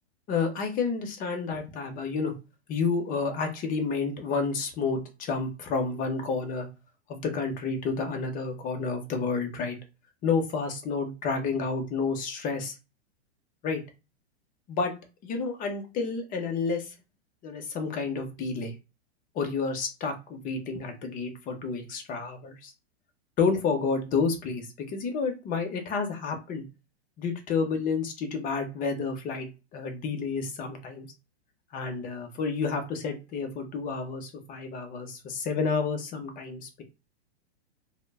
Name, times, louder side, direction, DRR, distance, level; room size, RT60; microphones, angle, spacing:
voice 1, 0.3-2.3 2.7-6.7 7.1-9.8 10.2-12.7 13.6-13.8 14.7-14.9 15.2-16.9 17.4-18.7 19.3-22.7 23.4-26.7 27.2-31.1 31.7-36.8, left 4 dB, 25° left, 5 dB, 0.6 m, -30 dB
2.0 x 2.0 x 3.4 m, 0.29 s
hypercardioid pair, 125°, 33 cm